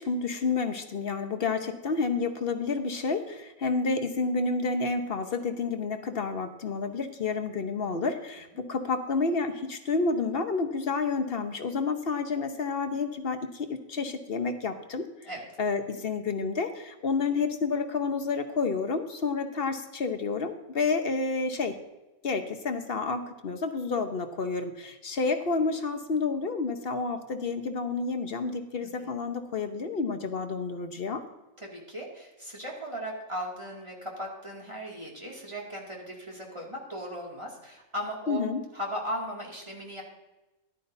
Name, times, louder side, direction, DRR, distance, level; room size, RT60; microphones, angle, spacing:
voice 1, 0.0-15.3 15.6-21.8 22.2-31.2 38.3-38.6, left 4 dB, 50° left, 7 dB, 0.9 m, -30 dB
voice 2, 31.6-38.4 38.7-40.0, equal, 20° right, -2 dB, 2.3 m, -37 dB
13.5 x 11.0 x 2.7 m, 1.1 s
omnidirectional pair, 1.5 m